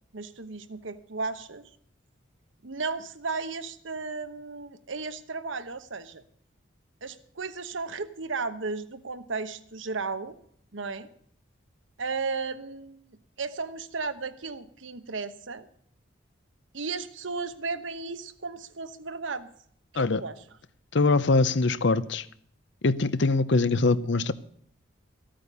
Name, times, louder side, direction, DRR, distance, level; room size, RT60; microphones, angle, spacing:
voice 1, 0.1-1.6 2.6-6.2 7.0-10.4 10.7-11.1 12.0-15.7 16.7-19.5 19.9-20.4, right 4 dB, 75° right, 11 dB, 1.1 m, -34 dB
voice 2, 20.9-22.2 22.8-24.3, left 3 dB, 65° left, 16 dB, 0.7 m, -23 dB
14.5 x 8.9 x 6.8 m, 0.64 s
head